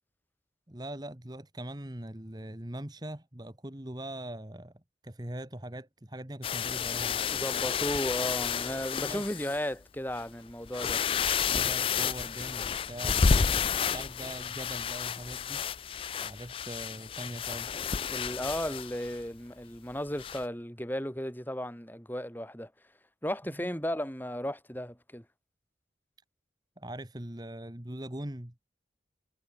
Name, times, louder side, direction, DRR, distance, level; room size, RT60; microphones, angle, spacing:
voice 1, 0.7-4.7 5.0-7.2 8.9-9.2 11.5-13.5 13.9-15.6 16.2-17.8 26.8-28.5, right 1 dB, 25° right, 1.6 m, -41 dB
sound 1, 6.4-9.6 10.2-10.3 10.7-19.2 20.2-20.4, left 6 dB, 30° left, 0.3 m, -31 dB
voice 2, 7.3-11.0 18.1-22.7 23.2-25.3, equal, 10° left, 4.0 m, -35 dB
head